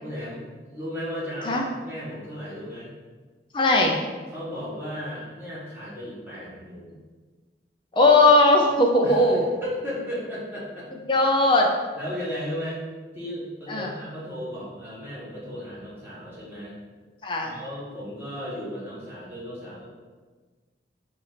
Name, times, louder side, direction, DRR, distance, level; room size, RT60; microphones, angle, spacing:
voice 1, 0.0-2.9 4.3-7.0 9.0-10.9 11.9-12.8 13.1-16.8 17.4-19.9, equal, 10° right, -8 dB, 1.3 m, -35 dB
voice 2, 3.5-4.0 7.9-9.4 11.1-11.7 13.7-13.9 17.2-17.5, left 2 dB, 30° left, 1 dB, 0.5 m, -18 dB
4.8 x 2.5 x 4.1 m, 1.4 s
head